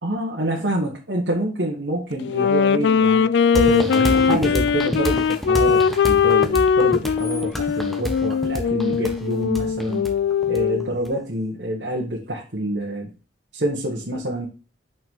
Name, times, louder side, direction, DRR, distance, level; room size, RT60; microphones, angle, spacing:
voice 1, 0.0-10.0 10.5-13.1 13.5-14.5, right 1 dB, 65° right, -3 dB, 1.7 m, -27 dB
Wind instrument woodwind instrument, 2.2-10.9, left 6 dB, 65° left, 0.3 m, -20 dB
sound 1, 3.5-11.1, equal, ahead, 1.1 m, -28 dB
6.2 x 5.7 x 3.8 m, 0.34 s
head